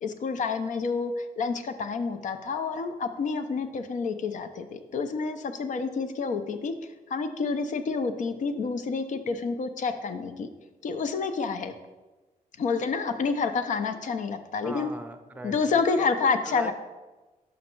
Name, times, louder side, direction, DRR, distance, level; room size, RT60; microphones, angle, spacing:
voice 1, 0.0-6.7 7.1-10.5 10.8-11.7 12.6-14.9 15.4-16.7, left 4 dB, 55° left, 10 dB, 0.6 m, -28 dB
voice 2, 14.6-16.1 16.5-16.7, right 2 dB, 10° right, 5 dB, 0.6 m, -40 dB
6.4 x 5.1 x 4.5 m, 1.2 s
cardioid pair, 125°, 15 cm